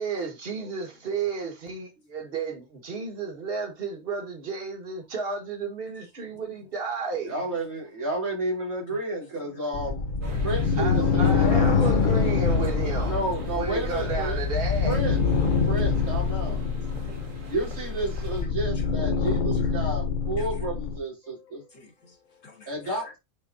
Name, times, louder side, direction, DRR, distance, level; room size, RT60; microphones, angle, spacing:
voice 1, 0.0-7.3 10.8-13.2 13.5-15.0, right 4 dB, 40° right, 1.9 m, -32 dB
voice 2, 0.6-1.3 2.1-2.3 6.2-6.7 7.4-7.5 8.9-9.1 9.4-9.7 10.3-10.8 11.6-12.4 13.7-13.8 15.6-15.9 16.9-17.2 18.4-18.9 19.4-19.7 20.4-20.7 21.2-23.1, left 3 dB, 60° left, 1.9 m, -49 dB
voice 3, 7.2-10.0 10.4-11.5 13.0-14.4 14.8-15.2 15.7-16.6 17.2-21.6 22.7-23.2, right 2 dB, 80° right, 5.0 m, -31 dB
sound 1, 9.7-21.0, left 5 dB, 45° left, 0.8 m, -25 dB
sound 2, 10.2-18.4, right 1 dB, 65° right, 2.0 m, -41 dB
9.4 x 4.0 x 2.7 m
omnidirectional pair, 1.5 m